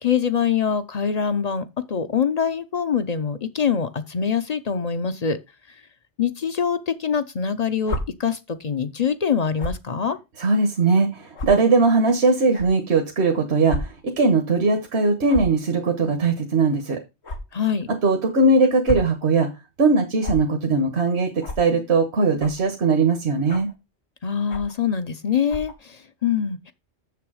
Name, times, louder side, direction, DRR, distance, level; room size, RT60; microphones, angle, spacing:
voice 1, 0.0-5.4 5.7-5.8 6.2-10.2 17.5-17.9 24.2-26.7, left 7 dB, 45° left, 0.7 m, -24 dB
sound 1, 7.8-8.0 9.6-9.8 10.6-10.7 11.3-11.5 12.5-12.7 13.7-13.8 14.1-14.3 15.3-15.6 17.2-17.4 18.6-19.1 20.2-20.4 21.4-21.6 22.4-22.6 23.5-23.7 24.5-24.8 25.5-25.7, left 1 dB, 85° left, 1.7 m, -30 dB
voice 2, 10.4-17.0 18.0-19.5 19.8-23.7, right 3 dB, 80° right, 1.5 m, -20 dB
7.0 x 6.8 x 4.8 m
omnidirectional pair, 1.1 m